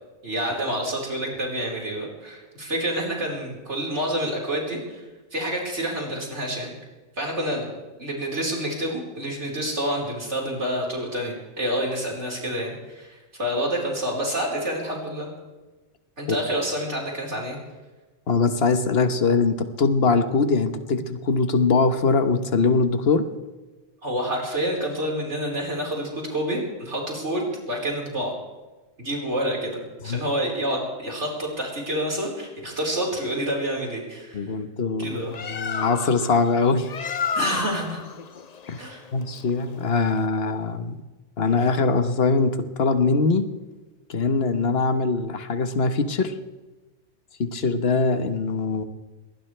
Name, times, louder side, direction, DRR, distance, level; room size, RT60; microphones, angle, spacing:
voice 1, 0.2-5.0 5.3-6.7 7.2-7.7 8.0-15.3 16.2-17.6 24.0-28.3 29.0-29.7 30.0-34.5 35.0-35.3 37.3-38.0 38.8-39.0, right 1 dB, 85° right, -2 dB, 5.0 m, -28 dB
voice 2, 18.3-23.2 30.0-30.2 34.3-36.9 38.7-38.8 39.1-41.0 41.4-43.5 44.1-46.3 47.4-48.8, left 4 dB, 60° left, 9 dB, 1.4 m, -22 dB
Bird, 35.1-40.3, left 6 dB, 40° left, 0.7 m, -32 dB
21.5 x 19.5 x 3.3 m, 1.2 s
omnidirectional pair, 1.2 m